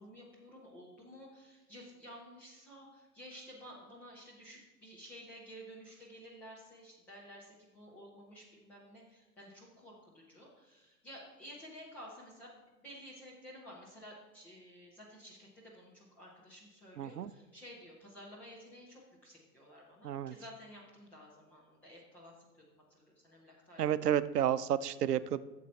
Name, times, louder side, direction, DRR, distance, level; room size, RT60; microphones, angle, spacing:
voice 1, 0.0-22.4 22.7-23.8, equal, 5° left, -7 dB, 0.3 m, -53 dB
voice 2, 17.0-17.3 20.0-20.3 23.8-25.4, right 10 dB, 80° right, 16 dB, 0.6 m, -31 dB
12.0 x 7.6 x 4.1 m, 1.1 s
figure-of-eight pair, 110°, 47 cm